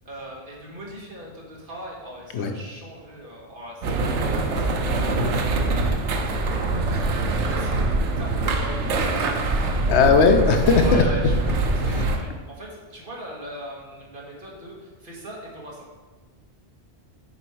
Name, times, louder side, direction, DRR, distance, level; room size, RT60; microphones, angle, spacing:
voice 1, 0.0-9.9 10.6-15.9, equal, 50° right, -3 dB, 1.6 m, -40 dB
sound 1, 3.8-12.2, right 2 dB, 80° right, 1.0 m, -23 dB
voice 2, 9.9-11.0 11.9-12.1, left 5 dB, 75° left, 6 dB, 0.9 m, -18 dB
6.8 x 4.3 x 4.7 m, 1.3 s
omnidirectional pair, 1.2 m